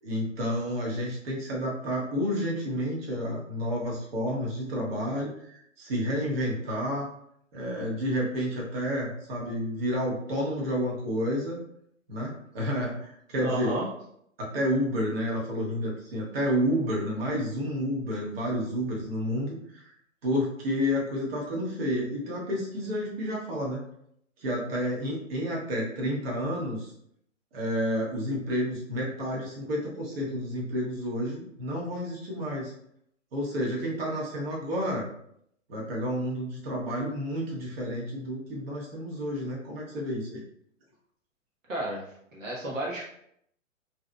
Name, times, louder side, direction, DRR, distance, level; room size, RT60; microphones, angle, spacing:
voice 1, 0.0-7.1 7.5-11.6 12.1-13.8 14.4-19.9 20.2-23.8 24.4-26.9 27.5-32.7 33.3-35.1 35.7-40.4, equal, 45° right, -3 dB, 1.5 m, -30 dB
voice 2, 13.4-13.9 41.7-42.0 42.3-43.1, right 1 dB, 70° right, -4 dB, 1.3 m, -31 dB
6.0 x 3.1 x 2.3 m, 0.70 s
figure-of-eight pair, 120°, 41 cm